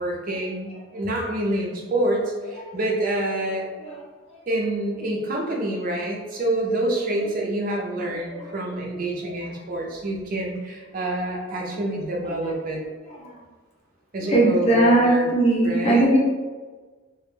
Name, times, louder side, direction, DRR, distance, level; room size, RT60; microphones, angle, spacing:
voice 1, 0.0-3.7 4.5-12.8 14.1-15.2 15.6-16.0, right 1 dB, 45° right, -1 dB, 0.5 m, -27 dB
voice 2, 3.7-4.4 7.1-7.2 8.3-9.5 12.2-12.5 13.1-13.4 14.2-16.2, right 2 dB, 30° left, -4 dB, 0.5 m, -22 dB
2.1 x 2.0 x 3.0 m, 1.4 s
head